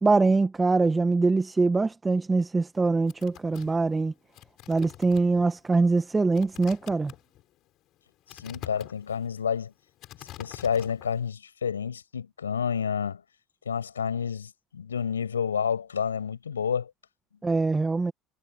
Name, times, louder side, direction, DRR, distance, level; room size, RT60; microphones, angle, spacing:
voice 1, 0.0-4.1 4.7-7.1 17.4-18.1, right 3 dB, 20° right, 1.8 m, -23 dB
sound 1, 2.8-11.3, left 15 dB, 55° left, 6.5 m, -47 dB
voice 2, 8.3-9.7 10.4-13.2 13.7-16.9, left 7 dB, 85° left, 6.1 m, -29 dB
figure-of-eight pair, 65°, 0 cm